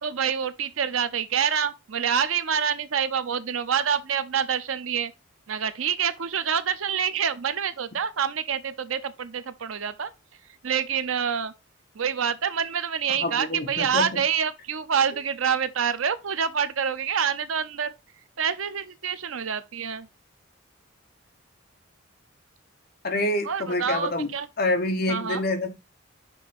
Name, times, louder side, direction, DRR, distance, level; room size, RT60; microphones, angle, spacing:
voice 1, 0.0-5.1 5.5-10.1 10.6-11.5 12.0-17.9 18.4-20.1 23.4-24.5 25.1-25.4, right 7 dB, 80° right, 0.7 m, -27 dB
voice 2, 13.2-14.2 23.0-24.3 24.6-25.7, left 2 dB, 50° left, 1.1 m, -26 dB
6.2 x 3.3 x 5.1 m
head